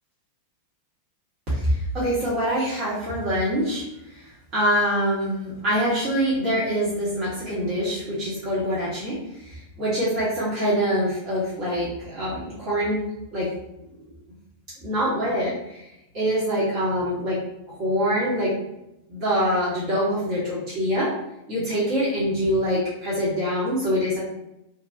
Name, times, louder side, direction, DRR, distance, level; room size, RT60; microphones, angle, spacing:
voice 1, 1.5-3.8 4.1-13.0 13.3-13.5 14.8-17.4 17.7-18.5 19.1-21.1 21.5-24.2, equal, 40° right, -9 dB, 1.0 m, -25 dB
2.6 x 2.3 x 2.4 m, 0.87 s
figure-of-eight pair, 90°, 0 cm